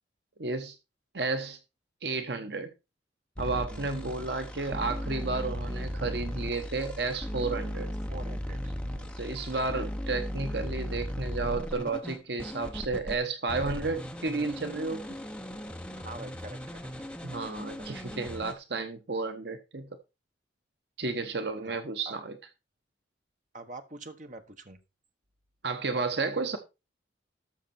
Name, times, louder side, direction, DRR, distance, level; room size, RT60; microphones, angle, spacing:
voice 1, 0.4-0.7 1.1-1.6 2.0-2.7 3.4-7.9 9.2-15.1 17.2-19.9 21.0-22.3 25.6-26.6, right 3 dB, 60° right, 1.1 m, -32 dB
sound 1, 3.4-13.2 13.5-18.5, equal, 5° left, 1.0 m, -37 dB
voice 2, 8.1-8.6 8.9-9.1 16.0-16.9 17.8-17.9 21.6-22.2 23.5-24.8, right 2 dB, 40° right, 1.4 m, -45 dB
13.0 x 6.6 x 4.3 m
head